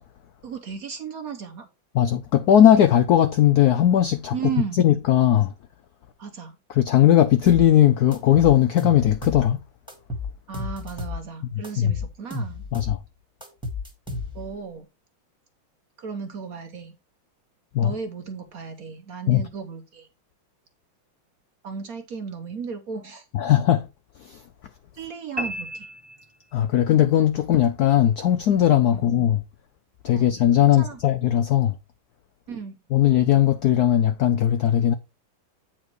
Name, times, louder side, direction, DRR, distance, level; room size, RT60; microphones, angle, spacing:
voice 1, 0.4-1.7 4.3-4.9 6.2-6.6 10.5-12.7 14.3-14.9 16.0-16.9 17.8-20.1 21.6-23.3 25.0-25.9 28.9-29.1 30.1-30.3 30.6-31.0 32.5-32.8, right 6 dB, 55° right, 1.1 m, -34 dB
voice 2, 1.9-4.5 4.8-5.5 6.8-9.6 11.8-11.9 12.7-13.0 17.7-17.9 19.3-19.4 23.3-23.8 24.2-24.4 26.5-29.4 30.0-31.7 32.9-34.9, left 11 dB, 75° left, 0.8 m, -18 dB
sound 1, 7.5-7.7 8.1-9.5 9.9-11.2 11.6-13.0 13.4-14.6, left 3 dB, ahead, 1.6 m, -32 dB
sound 2, 25.4-26.9, right 1 dB, 20° right, 0.7 m, -34 dB
8.7 x 4.5 x 4.6 m
omnidirectional pair, 2.3 m